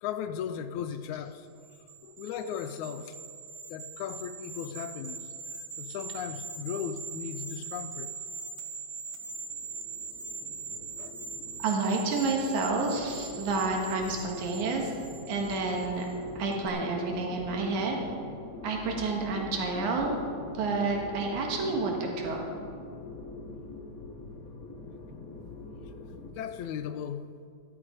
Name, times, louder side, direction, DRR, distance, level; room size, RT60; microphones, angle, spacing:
voice 1, 0.0-1.7 2.0-3.2 3.7-8.1 11.0-11.2 26.3-27.3, left 8 dB, 85° left, 10 dB, 2.0 m, -37 dB
sound 1, 1.6-16.2 16.5-16.7, right 4 dB, 50° right, 1.2 m, -42 dB
sound 2, 9.2-26.3, left 3 dB, 40° left, 1.4 m, -44 dB
voice 2, 11.6-14.9 15.3-16.1 16.3-18.0 18.6-20.2 20.5-22.6, right 3 dB, 85° right, 1 dB, 3.0 m, -29 dB
15.0 x 12.0 x 5.1 m, 2.4 s
omnidirectional pair, 3.3 m